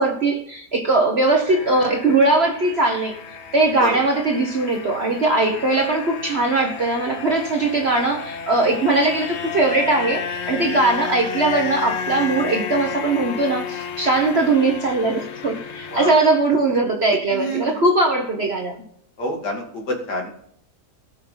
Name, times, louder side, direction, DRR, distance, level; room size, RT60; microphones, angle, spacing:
voice 1, 0.0-3.2 3.5-18.8, right 2 dB, 40° right, 1 dB, 1.4 m, -20 dB
sound 1, 1.5-16.2, left 7 dB, 50° left, 0.9 m, -32 dB
voice 2, 17.3-17.8 19.2-20.3, equal, 75° left, 1 dB, 2.8 m, -27 dB
19.0 x 6.4 x 4.0 m, 0.69 s
omnidirectional pair, 1.8 m